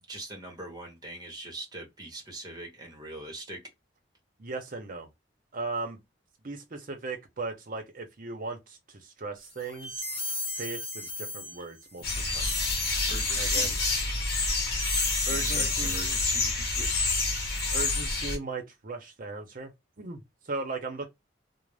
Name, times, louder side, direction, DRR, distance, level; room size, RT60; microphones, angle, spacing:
voice 1, 0.1-3.6 13.0-13.7 15.3-17.0, right 2 dB, 20° right, 1.0 m, -41 dB
voice 2, 4.4-5.1 5.5-6.0 6.4-10.0 10.5-12.0 12.3-12.7 13.3-13.8 15.3-16.2 17.7-19.7 20.0-21.1, right 3 dB, 45° right, 0.7 m, -37 dB
sound 1, 9.5-16.8, left 2 dB, 30° left, 0.9 m, -37 dB
sound 2, 12.0-18.4, left 3 dB, 55° left, 0.9 m, -28 dB
2.5 x 2.1 x 3.2 m
head